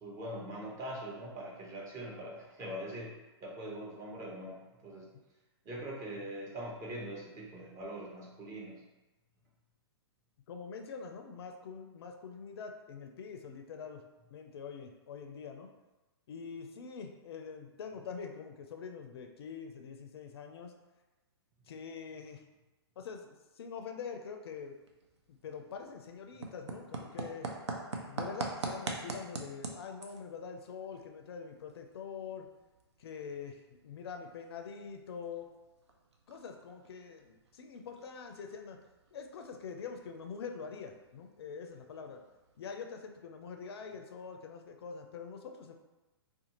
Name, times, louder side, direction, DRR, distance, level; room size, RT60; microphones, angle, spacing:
voice 1, 0.0-5.1 5.6-8.8, right 1 dB, 25° right, -3 dB, 0.7 m, -42 dB
voice 2, 10.5-14.0 14.3-15.7 16.3-20.7 21.7-22.4 23.0-24.7 25.4-27.5 28.0-32.5 33.0-35.5 36.3-38.8 39.1-42.2 42.6-45.7, left 6 dB, 65° left, 4 dB, 0.4 m, -44 dB
sound 1, 24.5-42.6, right 3 dB, 90° right, 0.5 m, -46 dB
2.5 x 2.3 x 2.8 m, 1.1 s
hypercardioid pair, 125°, 14 cm